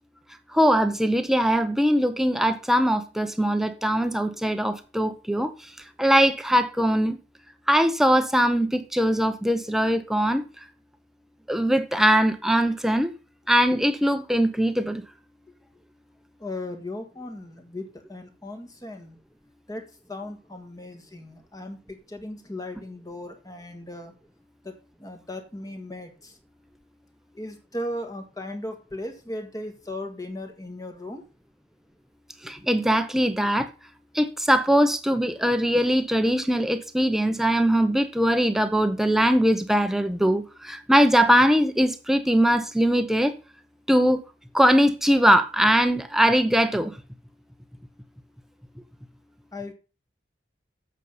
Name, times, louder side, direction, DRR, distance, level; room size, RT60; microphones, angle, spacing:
voice 1, 0.5-5.5 6.0-7.2 7.7-10.4 11.5-13.1 13.5-15.0 32.4-33.7 34.1-43.3 43.9-44.2 44.5-46.9, equal, ahead, 0.8 m, -21 dB
voice 2, 16.4-19.2 19.7-24.1 24.6-24.7 25.0-26.3 27.3-31.2 49.5-49.7, left 1 dB, 20° left, 1.6 m, -37 dB
8.3 x 6.5 x 5.5 m
head